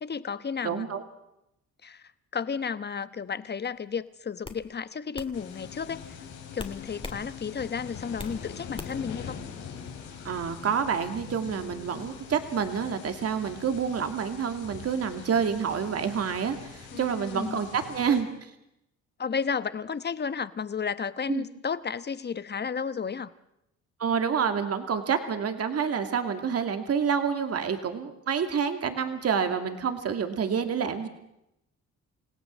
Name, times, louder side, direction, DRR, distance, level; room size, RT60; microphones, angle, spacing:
voice 1, 0.0-0.8 1.8-6.2 6.5-9.4 16.9-17.6 19.2-23.3, left 6 dB, 35° left, 15 dB, 1.1 m, -33 dB
voice 2, 0.6-1.0 10.2-18.5 21.3-21.4 24.0-31.1, right 7 dB, 50° right, 7 dB, 2.4 m, -28 dB
sound 1, 3.6-3.9 4.4-4.6 5.1-5.3 6.6-7.2 7.6-8.4 8.8-9.1, left 3 dB, 15° left, 2.5 m, -40 dB
sound 2, 5.3-18.2, left 7 dB, 80° left, 4.8 m, -43 dB
29.0 x 17.0 x 7.5 m, 0.85 s
cardioid pair, 90°, 30 cm